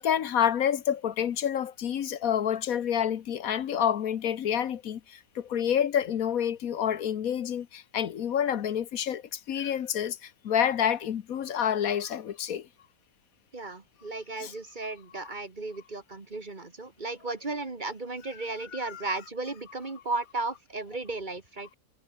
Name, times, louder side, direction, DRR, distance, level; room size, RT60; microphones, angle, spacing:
voice 1, 0.0-12.7 14.4-14.5 18.7-19.0, left 9 dB, 75° left, 1.4 m, -28 dB
voice 2, 13.5-21.8, right 3 dB, 35° right, 1.8 m, -35 dB
omnidirectional pair, 1.5 m